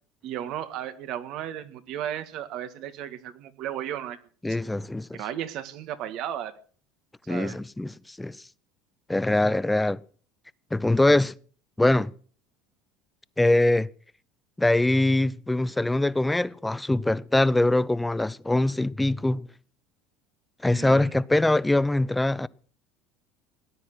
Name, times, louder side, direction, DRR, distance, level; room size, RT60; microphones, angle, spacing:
voice 1, 0.2-4.2 5.1-6.6 7.3-7.6 20.7-21.2, right 11 dB, 60° right, 1.7 m, -34 dB
voice 2, 4.4-5.2 7.3-8.4 9.1-10.0 10.7-11.3 11.8-12.1 13.4-13.9 14.6-19.5 20.6-22.5, left 2 dB, 10° left, 0.7 m, -23 dB
18.0 x 9.8 x 6.1 m
hypercardioid pair, 80°, 0 cm